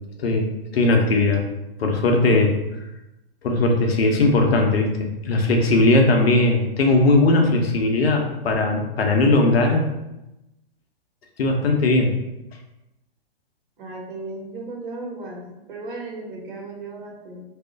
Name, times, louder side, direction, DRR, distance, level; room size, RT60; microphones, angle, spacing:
voice 1, 0.2-1.4 1.8-2.6 3.4-9.8 11.4-12.1, left 2 dB, 75° left, 2 dB, 0.7 m, -19 dB
voice 2, 13.8-17.4, right 2 dB, 55° right, -1 dB, 1.0 m, -35 dB
2.4 x 2.1 x 3.7 m, 0.95 s
hypercardioid pair, 120°, 31 cm